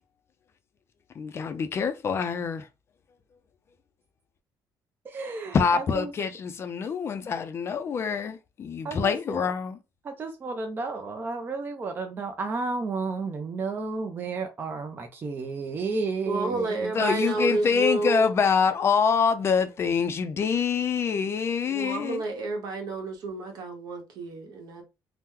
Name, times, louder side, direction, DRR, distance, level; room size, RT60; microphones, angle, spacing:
voice 1, 1.2-2.6 5.5-9.8 16.9-22.2, left 6 dB, 35° left, 0.4 m, -25 dB
voice 2, 5.1-6.1 8.8-9.5 10.0-16.9, right 4 dB, 25° right, 0.4 m, -32 dB
voice 3, 16.3-18.3 21.6-24.8, right 2 dB, 65° right, 1.0 m, -30 dB
2.9 x 2.1 x 3.6 m
cardioid pair, 155°, 7 cm